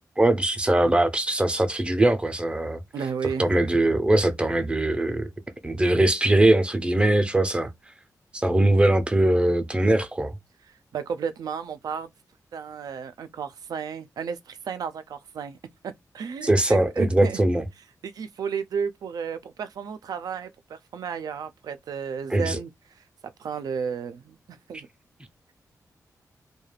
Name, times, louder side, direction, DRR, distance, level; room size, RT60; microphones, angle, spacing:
voice 1, 0.2-2.8 3.4-5.3 5.6-7.7 8.3-10.3 16.4-17.6 22.3-22.6, right 1 dB, 15° right, 0.4 m, -21 dB
voice 2, 2.9-3.5 10.9-12.1 12.5-15.6 16.1-17.4 18.0-22.7 23.4-24.9, right 6 dB, 80° right, 0.4 m, -33 dB
2.3 x 2.1 x 3.2 m
wide cardioid pair, 115°, 6 cm